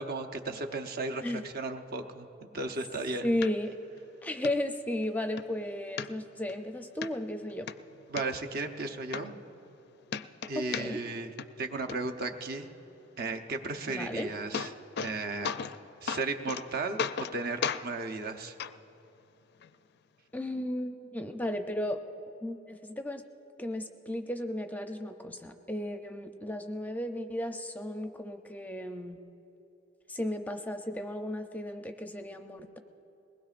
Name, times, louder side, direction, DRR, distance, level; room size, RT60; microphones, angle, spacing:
voice 1, 0.0-2.3 2.5-3.3 8.1-9.3 10.5-11.3 11.6-12.7 13.2-14.7 15.0-15.5 16.0-17.0 17.3-18.6, right 3 dB, 55° right, 5 dB, 0.8 m, -35 dB
voice 2, 3.2-3.7 4.2-7.7 10.5-11.0 13.9-14.3 20.3-22.0 22.4-23.2 23.6-29.2 30.1-32.8, left 1 dB, 10° left, 6 dB, 0.5 m, -34 dB
sound 1, 3.4-3.5 4.0-4.1 4.4-4.5 5.0-5.5 6.0-6.6 7.0-7.1 7.5-8.2 8.8-8.9 9.1-9.8 10.1-11.1 11.4-11.9 14.0-14.1 14.3-15.2 15.4-15.8 16.1-16.6 17.0-17.4 17.6-17.8 18.6-18.7 19.6-19.7, left 6 dB, 60° left, 0.4 m, -34 dB
21.5 x 19.5 x 2.5 m, 3.0 s
head